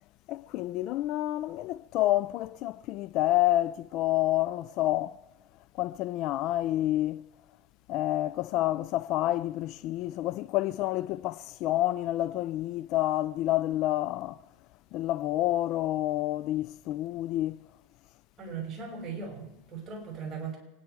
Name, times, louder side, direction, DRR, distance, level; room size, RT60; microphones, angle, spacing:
voice 1, 0.3-5.2 5.7-7.3 7.9-14.4 14.9-17.6, left 15 dB, 50° left, 0.4 m, -28 dB
voice 2, 18.4-20.6, right 5 dB, 30° right, 6.3 m, -38 dB
27.5 x 10.0 x 4.7 m
supercardioid pair, 120°, 0 cm